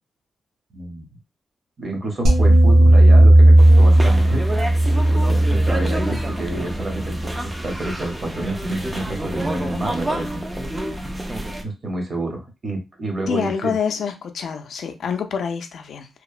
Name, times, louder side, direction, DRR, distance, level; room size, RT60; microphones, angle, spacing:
voice 1, 0.7-1.1 1.8-4.4 5.1-10.4 11.6-13.7, right 1 dB, 30° right, 0.7 m, -29 dB
sound 1, 2.2-7.5, right 1 dB, 65° right, 0.7 m, -14 dB
sound 2, 3.6-11.6, right 1 dB, 15° right, 0.3 m, -29 dB
voice 2, 13.3-16.1, left 7 dB, 65° left, 0.4 m, -26 dB
2.8 x 2.0 x 2.3 m
wide cardioid pair, 170°, 0 cm